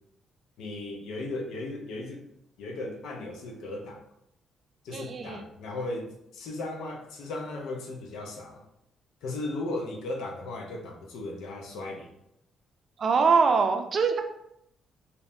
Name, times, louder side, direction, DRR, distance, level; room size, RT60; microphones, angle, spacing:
voice 1, 0.6-2.3 2.6-4.0 4.8-8.6 9.2-12.1, left 2 dB, 85° left, 2 dB, 0.7 m, -36 dB
voice 2, 4.9-5.4 13.0-14.2, right 5 dB, 50° right, 6 dB, 0.5 m, -23 dB
5.1 x 2.6 x 2.6 m, 0.78 s
cardioid pair, 90°, 0 cm